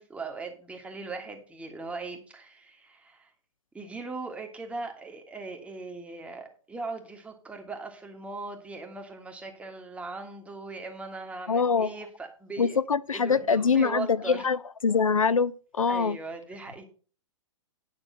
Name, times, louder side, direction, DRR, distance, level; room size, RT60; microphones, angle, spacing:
voice 1, 0.0-3.3 3.7-12.8 13.1-14.5 15.9-16.8, right 3 dB, 5° right, 1.6 m, -39 dB
voice 2, 11.5-11.9 12.6-16.2, left 5 dB, 85° left, 0.4 m, -24 dB
9.6 x 6.1 x 5.4 m
figure-of-eight pair, 115°, 17 cm